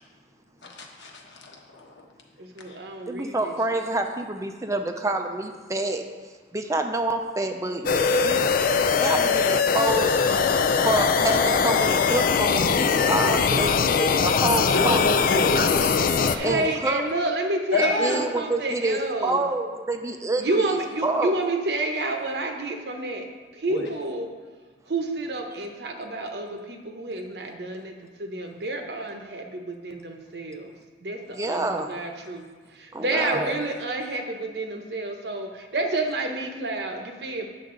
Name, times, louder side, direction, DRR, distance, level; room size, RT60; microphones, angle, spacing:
voice 1, 0.6-2.1 2.6-2.8 14.5-15.9 16.4-16.7 17.7-18.2 23.7-23.9 33.3-33.4, left 2 dB, 80° left, 1 dB, 1.2 m, -29 dB
voice 2, 2.4-3.5 16.3-19.4 20.4-23.3 23.5-24.3 24.9-30.7 31.0-32.4 32.7-37.5, right 2 dB, 65° right, 3 dB, 0.9 m, -29 dB
voice 3, 3.1-6.0 6.5-8.7 8.9-10.1 10.8-15.0 15.6-15.7 16.4-17.0 17.7-21.3 31.3-31.9 32.9-33.5, right 2 dB, 15° right, 5 dB, 0.5 m, -27 dB
sound 1, 7.9-16.4, left 5 dB, 50° left, 0.3 m, -21 dB
8.7 x 6.5 x 3.8 m, 1.5 s
head